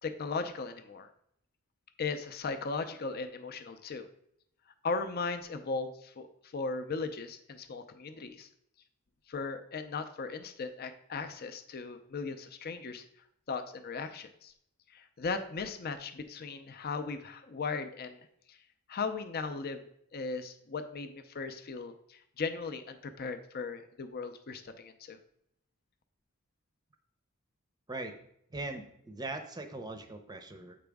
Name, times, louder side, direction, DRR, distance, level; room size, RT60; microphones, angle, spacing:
voice 1, 0.0-1.1 2.0-4.1 4.8-8.5 9.3-13.0 13.5-14.5 14.9-18.2 18.5-18.6 18.9-19.8 20.1-25.2, left 4 dB, 45° left, 9 dB, 0.5 m, -37 dB
voice 2, 28.5-30.8, right 2 dB, 20° right, 7 dB, 0.6 m, -40 dB
7.7 x 5.0 x 3.5 m, 0.72 s
head